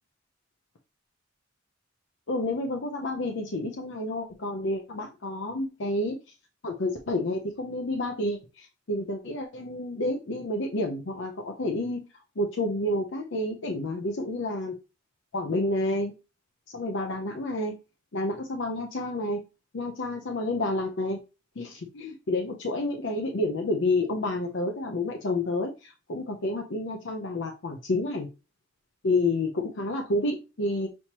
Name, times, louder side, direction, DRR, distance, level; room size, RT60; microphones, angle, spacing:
voice 1, 2.3-6.1 6.6-12.0 12.4-14.7 15.3-16.1 16.7-17.8 18.1-19.4 19.7-21.2 21.6-28.3 29.0-30.9, left 2 dB, 65° left, 3 dB, 0.7 m, -29 dB
6.3 x 2.9 x 2.8 m, 0.28 s
head